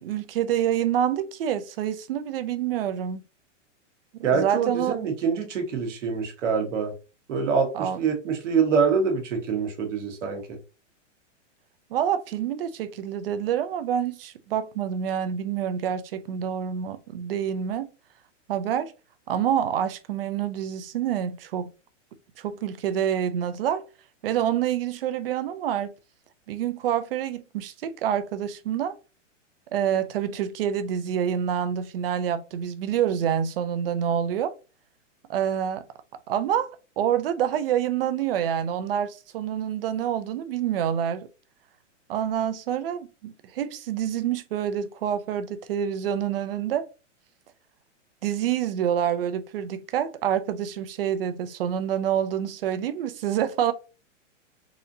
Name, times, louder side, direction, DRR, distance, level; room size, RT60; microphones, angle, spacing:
voice 1, 0.0-3.2 4.1-5.0 7.7-8.0 11.9-17.9 18.5-18.9 19.3-21.7 22.4-23.8 24.2-25.9 26.5-28.9 29.7-34.5 35.3-35.8 36.3-36.7 37.0-41.3 42.1-46.8 48.2-53.7, right 9 dB, 50° right, 0.5 m, -27 dB
voice 2, 4.2-6.9 7.3-10.6, right 5 dB, 70° right, 1.4 m, -25 dB
4.1 x 2.6 x 2.7 m
hypercardioid pair, 165°, 38 cm